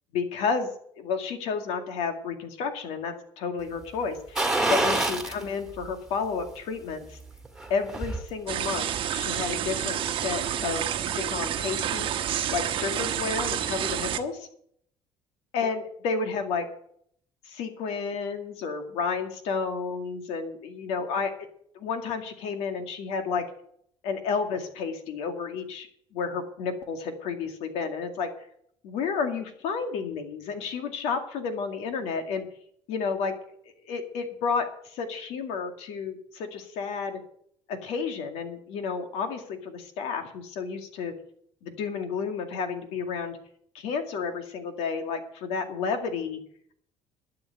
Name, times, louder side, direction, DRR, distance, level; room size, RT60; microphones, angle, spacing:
voice 1, 0.1-0.7 1.0-7.2 7.7-12.1 12.5-14.5 15.5-16.7 17.4-21.3 21.7-23.4 24.0-28.3 28.8-32.5 32.9-33.3 33.8-37.2 37.7-41.1 41.6-43.4 43.7-46.4, left 5 dB, 80° left, 6 dB, 2.1 m, -31 dB
sound 1, 4.4-5.4 5.8-5.9 7.4-8.2 8.6-8.7, right 2 dB, 5° right, 1.8 m, -26 dB
sound 2, 8.5-14.2, right 10 dB, 55° right, 1.1 m, -29 dB
12.0 x 7.1 x 7.8 m, 0.66 s
cardioid pair, 120°, 11 cm